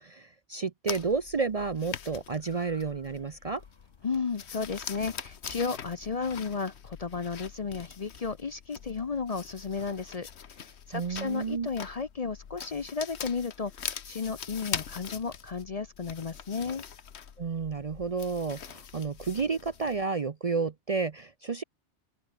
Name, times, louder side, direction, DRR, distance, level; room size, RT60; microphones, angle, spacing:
voice 1, 0.0-3.6 10.9-11.7 17.4-21.6, right 4 dB, 40° right, 0.6 m, -31 dB
sound 1, 0.9-20.0, left 7 dB, 70° left, 1.3 m, -43 dB
sound 2, 2.3-5.8 6.2-6.5, left 1 dB, 20° left, 5.1 m, -61 dB
voice 2, 4.0-10.3 10.6-16.8, left 5 dB, 40° left, 0.7 m, -33 dB
open air
omnidirectional pair, 1.2 m